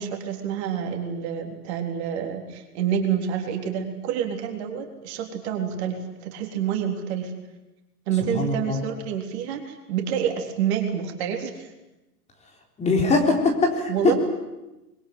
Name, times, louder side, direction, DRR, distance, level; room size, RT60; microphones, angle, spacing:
voice 1, 0.0-7.3 8.1-11.7 13.9-14.1, right 8 dB, 40° right, 3 dB, 3.9 m, -28 dB
voice 2, 8.3-8.9 12.8-14.1, left 3 dB, 15° left, 2 dB, 3.9 m, -22 dB
25.0 x 22.5 x 9.4 m, 0.99 s
hypercardioid pair, 125°, 49 cm